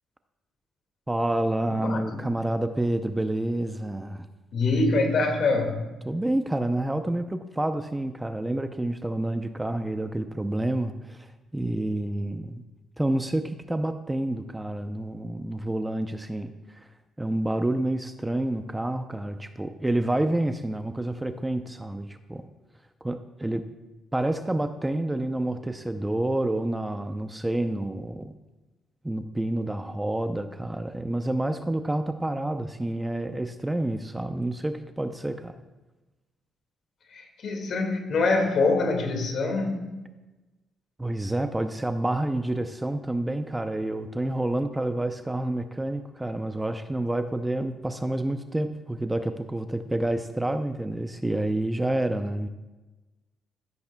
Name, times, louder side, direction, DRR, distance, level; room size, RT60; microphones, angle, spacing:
voice 1, 1.1-4.3 6.1-12.6 13.0-16.5 17.2-22.4 23.0-23.6 24.1-28.3 29.0-35.5 41.0-52.5, right 1 dB, 10° right, 8 dB, 0.5 m, -28 dB
voice 2, 1.7-2.3 4.5-5.9 37.1-39.9, left 3 dB, 60° left, 4 dB, 1.9 m, -25 dB
14.5 x 8.2 x 2.2 m, 1.1 s
cardioid pair, 90°, 0 cm